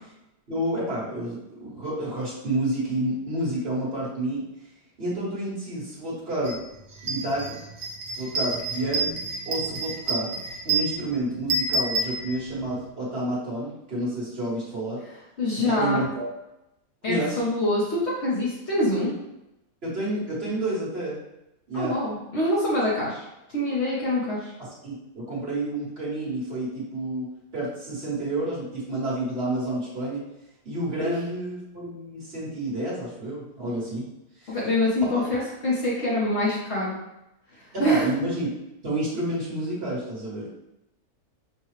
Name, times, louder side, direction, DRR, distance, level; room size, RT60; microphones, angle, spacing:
voice 1, 0.5-4.4 5.0-6.6 7.0-7.6 8.2-10.4 10.6-15.0 15.6-16.3 17.1-17.4 19.8-21.2 21.7-21.9 24.6-27.3 27.5-30.2 30.6-34.0 34.4-34.6 35.0-35.2 37.7-38.5 38.8-40.6, right 1 dB, 45° right, -6 dB, 1.5 m, -29 dB
sound 1, 6.5-6.6 6.9-12.8, right 3 dB, 70° right, 1.1 m, -29 dB
voice 2, 15.4-16.0 17.0-19.1 21.7-24.5 31.0-31.1 34.5-37.0 37.5-38.1, left 1 dB, 50° left, -8 dB, 1.2 m, -25 dB
5.6 x 2.3 x 3.1 m, 0.90 s
omnidirectional pair, 1.5 m